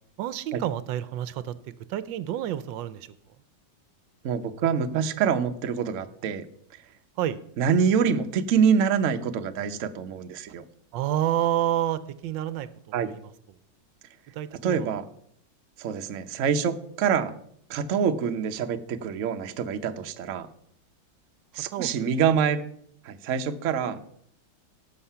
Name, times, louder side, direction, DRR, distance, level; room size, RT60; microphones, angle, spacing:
voice 1, 0.2-1.6 1.9-3.1 7.2-7.4 10.9-13.3 14.3-14.9 21.7-22.2, right 12 dB, 75° right, 15 dB, 1.3 m, -29 dB
voice 2, 4.2-6.5 7.6-10.6 12.9-13.1 14.6-15.1 15.8-17.3 17.7-20.5 21.5-22.6 23.1-24.0, right 7 dB, 55° right, 7 dB, 0.9 m, -25 dB
17.0 x 6.6 x 5.6 m, 0.67 s
omnidirectional pair, 2.1 m